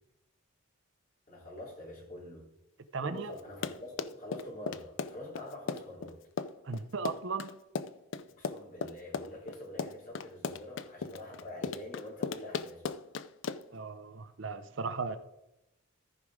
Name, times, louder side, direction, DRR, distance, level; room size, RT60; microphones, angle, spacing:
voice 1, 1.3-2.5 3.0-6.2 8.3-12.8 15.1-15.2, left 1 dB, 40° left, -3 dB, 3.4 m, -45 dB
voice 2, 2.9-3.3 6.6-7.5 13.7-15.2, right 4 dB, 55° right, 11 dB, 0.6 m, -36 dB
Run, 3.4-13.8, left 5 dB, 55° left, 0.4 m, -37 dB
14.0 x 5.1 x 4.8 m, 0.89 s
head